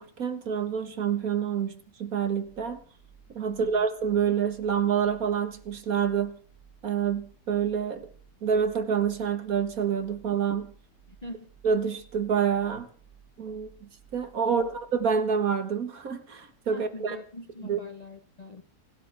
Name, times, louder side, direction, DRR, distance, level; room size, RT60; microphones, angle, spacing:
voice 1, 0.0-2.8 3.3-6.3 6.8-8.1 8.4-10.7 11.6-12.9 13.4-17.2 17.6-17.8, right 7 dB, 55° right, 1.8 m, -27 dB
sound 1, 2.4-15.1, right 8 dB, 85° right, 8.0 m, -57 dB
voice 2, 3.5-3.8 11.2-11.5 14.4-14.7 16.7-18.6, left 2 dB, 30° left, 0.9 m, -42 dB
27.5 x 12.5 x 3.5 m
omnidirectional pair, 1.8 m